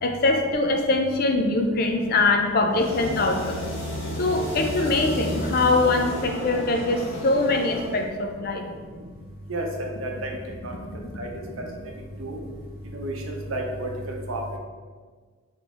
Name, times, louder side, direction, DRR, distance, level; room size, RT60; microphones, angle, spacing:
voice 1, 0.0-3.7 4.2-8.6, left 2 dB, 45° left, 3 dB, 0.4 m, -23 dB
Musical instrument, 1.9-7.9, equal, 15° right, 0.7 m, -41 dB
sound 1, 2.7-8.1, left 1 dB, 60° left, 0.9 m, -33 dB
voice 2, 9.5-10.3 10.6-10.7 11.2-11.3 12.2-12.4 12.9-14.4, right 1 dB, 80° right, 1 dB, 0.7 m, -31 dB
3.9 x 3.1 x 3.7 m, 1.6 s
head